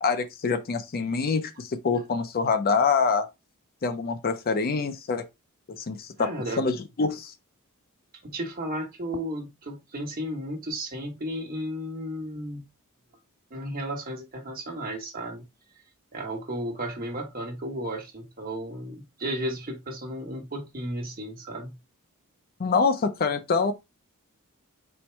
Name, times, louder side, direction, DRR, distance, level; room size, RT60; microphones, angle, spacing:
voice 1, 0.0-3.3 3.8-5.3 5.7-6.3 6.6-7.3 22.6-23.7, left 4 dB, 40° left, 0.5 m, -25 dB
voice 2, 6.2-6.7 8.2-12.6 13.5-15.4 16.1-21.8, right 1 dB, 40° right, 1.2 m, -34 dB
4.4 x 2.1 x 4.4 m
head